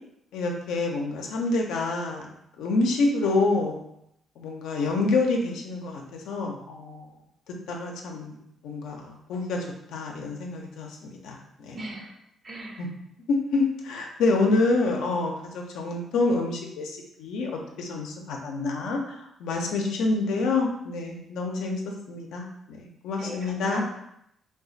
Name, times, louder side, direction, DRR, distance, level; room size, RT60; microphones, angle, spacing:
voice 1, 0.3-2.3 2.6-3.8 4.4-7.1 7.7-8.4 8.6-9.6 9.9-11.8 12.8-12.9 13.3-17.5 17.8-21.8 22.1-23.8, left 3 dB, 85° left, 1 dB, 0.5 m, -27 dB
voice 2, 11.7-12.1 12.4-12.8 23.2-23.9, right 2 dB, 40° right, 1 dB, 0.6 m, -38 dB
2.4 x 2.3 x 3.8 m, 0.78 s
cardioid pair, 90°, 0 cm